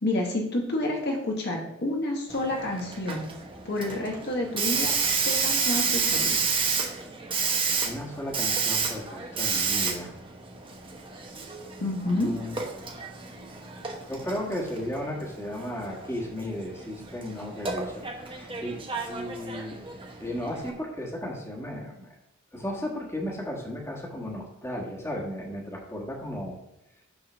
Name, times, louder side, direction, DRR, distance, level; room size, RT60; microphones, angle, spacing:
voice 1, 0.0-3.2 3.6-4.9 5.2-6.5 11.8-12.3, left 1 dB, 50° left, 0 dB, 1.2 m, -29 dB
Hiss, 2.3-20.7, right 5 dB, 25° right, 0.9 m, -31 dB
voice 2, 7.8-10.1 12.1-12.6 14.1-18.8 19.1-19.8 20.2-22.1 22.5-26.6, left 1 dB, 10° left, -2 dB, 1.5 m, -35 dB
7.8 x 3.8 x 6.1 m, 0.89 s
head